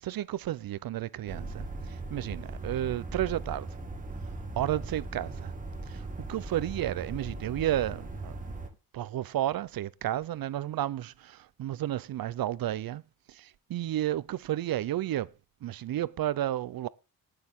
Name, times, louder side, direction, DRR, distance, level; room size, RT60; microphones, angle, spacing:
voice 1, 0.0-1.7 2.1-3.7 4.6-5.5 5.9-8.3 8.9-13.0 13.3-15.3 15.6-16.9, right 13 dB, 65° right, 0.6 m, -32 dB
sound 1, 1.3-8.7, right 2 dB, 20° right, 2.0 m, -39 dB
19.5 x 6.6 x 3.7 m
cardioid pair, 125°, 37 cm